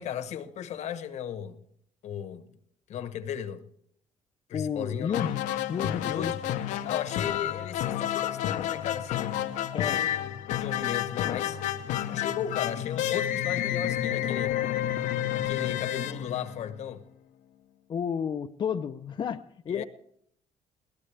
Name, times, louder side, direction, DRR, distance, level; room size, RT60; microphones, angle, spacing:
voice 1, 0.0-1.6 2.0-2.5 2.9-3.6 4.5-5.1 6.0-6.4 6.8-10.3 10.6-11.6 12.1-14.6 15.3-17.0 19.7-19.8, left 9 dB, 65° left, 1.2 m, -36 dB
voice 2, 4.5-6.3 9.7-10.0 17.9-19.8, left 7 dB, 40° left, 0.6 m, -32 dB
sound 1, 5.1-17.0, left 11 dB, 85° left, 0.9 m, -30 dB
21.5 x 17.5 x 3.4 m
cardioid pair, 125°, 13 cm